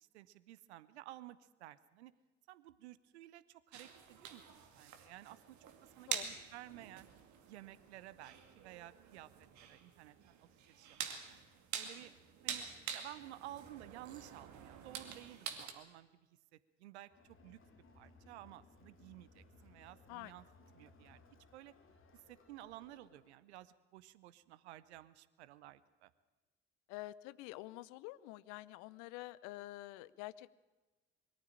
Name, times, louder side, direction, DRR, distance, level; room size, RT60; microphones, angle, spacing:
voice 1, 0.0-2.1 2.5-4.4 4.7-5.6 6.0-7.1 7.5-9.3 9.6-11.2 11.7-12.1 12.4-12.7 12.9-16.1 16.8-17.1 17.4-17.6 17.9-20.4 20.7-21.2 21.5-21.7 22.1-26.1, right 14 dB, 70° right, 17 dB, 0.9 m, -54 dB
sound 1, 3.7-15.7, right 8 dB, 55° right, 2.4 m, -47 dB
Crowd, 17.1-23.4, left 3 dB, 35° left, 2.7 m, -64 dB
voice 2, 26.9-30.5, left 17 dB, 60° left, 19 dB, 0.8 m, -48 dB
22.5 x 14.0 x 8.9 m, 1.2 s
figure-of-eight pair, 55°, 34 cm